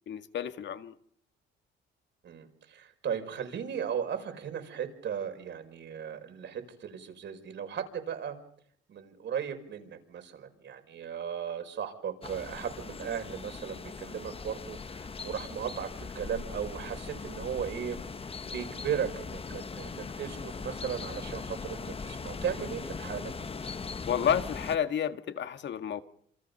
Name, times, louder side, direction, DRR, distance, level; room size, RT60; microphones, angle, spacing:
voice 1, 0.1-0.9 24.1-26.0, left 8 dB, 65° left, 1.8 m, -30 dB
voice 2, 2.2-8.4 8.9-23.7, right 8 dB, 65° right, 5.6 m, -36 dB
sound 1, 12.2-24.8, left 4 dB, 30° left, 1.1 m, -40 dB
28.0 x 27.5 x 5.5 m
cardioid pair, 90°, 20 cm